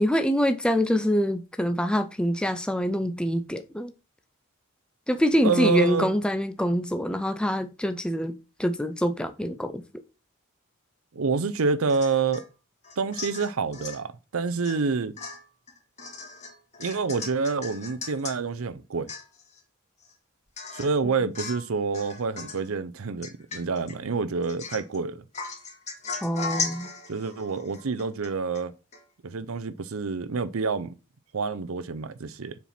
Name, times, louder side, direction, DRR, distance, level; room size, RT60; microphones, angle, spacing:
voice 1, 0.0-3.9 5.1-9.8 21.0-21.1 26.2-26.9, equal, 5° left, 0.5 m, -25 dB
voice 2, 5.4-6.1 11.1-12.5 13.0-15.1 16.8-19.1 20.7-25.2 27.1-28.7 29.2-30.9 31.3-32.5, right 4 dB, 70° right, 0.6 m, -27 dB
Domestic sounds home sounds / Chink clink / Drip, 11.9-12.5 12.8-14.0 14.6-14.9 15.2-18.4 18.8-18.9 19.1-19.6 20.0-20.1 20.6-21.0 21.3-21.7 21.9-22.7 23.2-24.0 24.4-25.0 25.3-28.7 28.9-29.0, left 4 dB, 30° left, 2.1 m, -37 dB
7.1 x 4.4 x 5.8 m
head